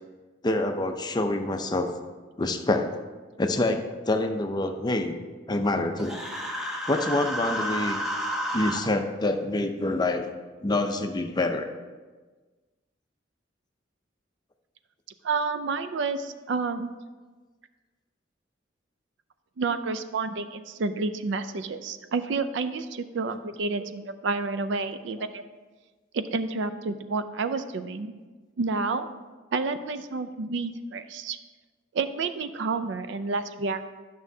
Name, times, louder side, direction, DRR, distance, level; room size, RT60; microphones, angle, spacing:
voice 1, 0.4-1.9 2.4-2.9 3.4-5.2 5.5-6.2 6.9-8.0 8.5-10.3 10.6-11.7, left 2 dB, 20° left, 6 dB, 0.5 m, -26 dB
Human voice, 6.0-8.8, equal, 5° right, 1.0 m, -31 dB
voice 2, 15.2-16.9 19.6-25.4 26.1-28.1 28.6-29.1 29.5-31.4 31.9-33.9, right 4 dB, 70° right, 11 dB, 0.4 m, -29 dB
11.5 x 6.2 x 2.7 m, 1.3 s
head